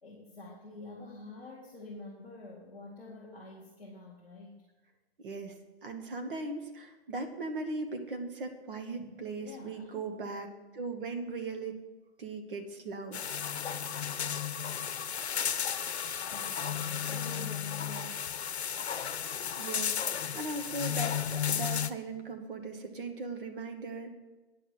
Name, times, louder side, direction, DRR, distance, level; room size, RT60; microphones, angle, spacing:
voice 1, 0.0-4.7 9.0-10.0 16.3-18.5, left 2 dB, 5° left, -16 dB, 0.3 m, -48 dB
voice 2, 5.2-5.6 5.8-10.5 10.7-11.8 12.2-13.2 19.6-24.1, right 3 dB, 55° right, 7 dB, 1.7 m, -38 dB
sound 1, 13.1-21.9, left 8 dB, 80° left, 0.7 m, -34 dB
9.7 x 6.4 x 7.6 m, 1.2 s
hypercardioid pair, 150°, 32 cm